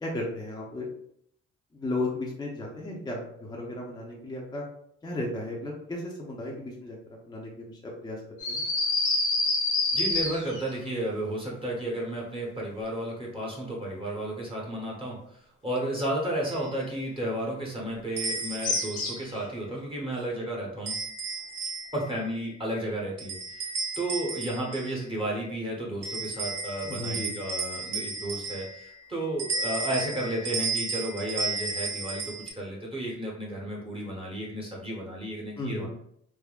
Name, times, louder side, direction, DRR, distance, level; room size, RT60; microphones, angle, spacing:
voice 1, 0.0-0.8 1.7-4.6 5.0-7.0 7.3-8.2 8.5-8.6 26.8-27.4 35.6-35.9, left 2 dB, 15° left, -3 dB, 0.6 m, -34 dB
sound 1, 8.4-10.7 18.6-19.4, left 2 dB, 80° left, 0.9 m, -27 dB
voice 2, 9.9-20.9 21.9-35.9, right 1 dB, 20° right, -3 dB, 0.9 m, -33 dB
sound 2, 16.4-16.7 18.2-19.2 20.9-22.1 23.2-25.0 26.0-28.9 29.4-32.5, right 4 dB, 55° right, 0.7 m, -33 dB
3.5 x 2.1 x 2.3 m, 0.70 s
cardioid pair, 90°, 30 cm